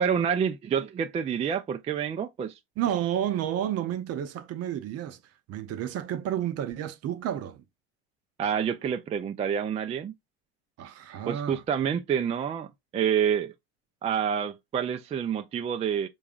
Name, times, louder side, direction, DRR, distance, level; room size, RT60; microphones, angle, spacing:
voice 1, 0.0-2.6 8.4-10.1 11.3-13.5 14.0-16.1, right 8 dB, 20° right, 0.3 m, -28 dB
voice 2, 2.8-5.2 5.5-7.6 10.8-11.6, right 11 dB, 45° right, 0.7 m, -31 dB
4.7 x 3.8 x 2.4 m
hypercardioid pair, 80°, 33 cm